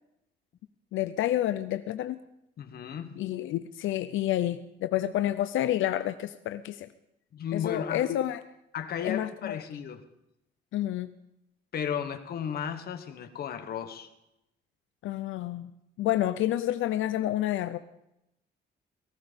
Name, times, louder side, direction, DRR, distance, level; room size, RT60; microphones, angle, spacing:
voice 1, 0.9-2.2 3.2-6.9 7.5-8.4 9.0-9.6 10.7-11.1 15.0-15.7 16.0-17.8, left 13 dB, 85° left, 11 dB, 0.6 m, -29 dB
voice 2, 2.6-3.1 7.3-8.0 8.7-10.0 11.7-14.1, left 8 dB, 50° left, 8 dB, 1.3 m, -34 dB
18.5 x 15.0 x 5.2 m, 0.83 s
cardioid pair, 170°, 20 cm